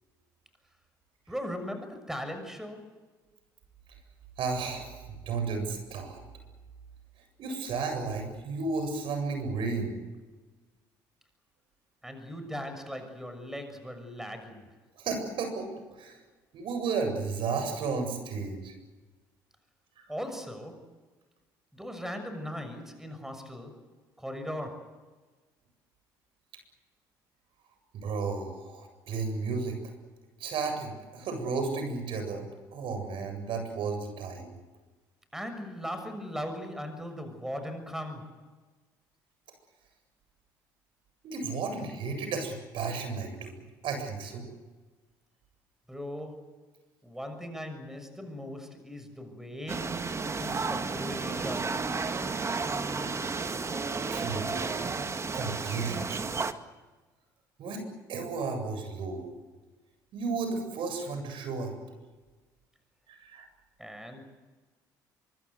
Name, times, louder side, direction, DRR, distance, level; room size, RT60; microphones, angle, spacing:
voice 1, 1.3-2.9 12.0-14.7 20.1-20.9 21.7-23.8 24.2-25.0 35.3-38.5 45.9-46.6 47.0-51.8 63.8-64.2, equal, 5° right, 7 dB, 6.5 m, -39 dB
voice 2, 4.4-6.2 7.4-10.0 15.0-16.2 16.5-18.7 20.0-20.1 27.9-29.9 30.4-34.5 41.2-43.5 43.8-44.5 54.0-54.9 55.3-56.4 57.6-59.3 60.1-61.7 63.2-63.5, right 4 dB, 65° right, 6 dB, 7.9 m, -33 dB
sound 1, 49.7-56.5, right 4 dB, 30° right, 2.0 m, -32 dB
24.0 x 24.0 x 8.1 m, 1.3 s
hypercardioid pair, 65°, 10 cm